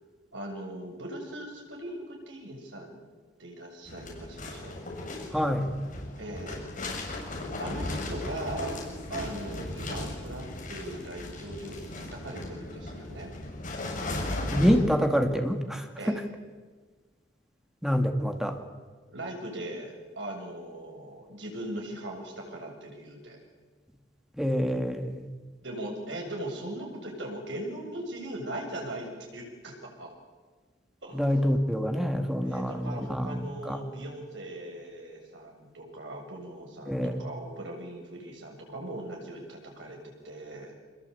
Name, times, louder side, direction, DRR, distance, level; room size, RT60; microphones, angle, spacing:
voice 1, 0.3-3.0 3.4-4.8 6.2-6.6 7.6-8.8 9.1-13.3 16.0-16.2 19.1-23.4 25.6-30.1 31.0-31.5 32.4-40.7, right 1 dB, 70° right, 1 dB, 7.5 m, -39 dB
sound 1, 3.8-14.7, left 2 dB, 45° left, 6.9 m, -37 dB
voice 2, 5.3-5.7 14.5-16.2 17.8-18.6 24.4-25.2 31.1-33.8 36.9-37.2, equal, 5° right, 5 dB, 2.2 m, -26 dB
26.0 x 22.0 x 8.6 m, 1.4 s
head